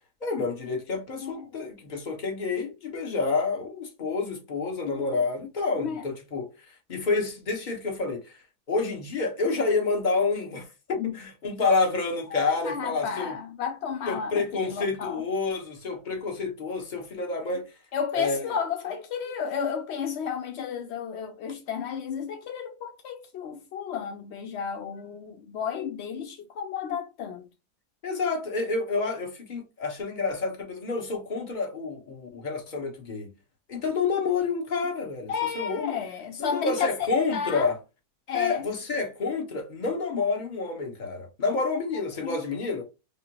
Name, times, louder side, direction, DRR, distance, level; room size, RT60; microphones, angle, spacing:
voice 1, 0.2-8.4 8.7-13.3 14.1-17.6 18.1-18.6 28.0-33.3 33.7-36.0 36.4-37.8 38.3-42.8, left 4 dB, 35° left, 1.0 m, -29 dB
voice 2, 1.2-1.5 4.8-5.2 5.8-6.0 11.0-11.1 12.3-15.2 17.9-27.5 35.3-37.7 38.3-38.7 42.2-42.4, left 7 dB, 80° left, 0.6 m, -32 dB
5.1 x 2.0 x 2.8 m
omnidirectional pair, 1.7 m